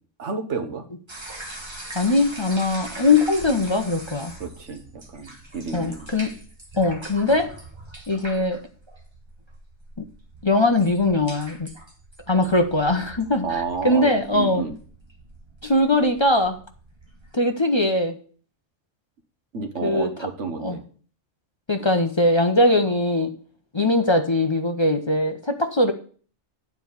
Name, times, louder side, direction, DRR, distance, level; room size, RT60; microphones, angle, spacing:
voice 1, 0.2-0.8 4.4-4.8 5.1-6.1 13.4-14.8 19.5-20.8, right 4 dB, 65° right, 5 dB, 1.5 m, -30 dB
sound 1, 1.1-17.4, right 1 dB, 20° right, 1.5 m, -42 dB
voice 2, 1.9-4.3 5.7-6.4 6.8-7.5 8.1-8.6 10.4-11.7 12.3-14.6 15.6-16.6 17.3-18.2 19.8-20.1 20.6-20.8 21.7-23.3 23.7-25.9, left 2 dB, 25° left, 5 dB, 0.7 m, -21 dB
9.6 x 4.6 x 7.1 m, 0.42 s
omnidirectional pair, 1.3 m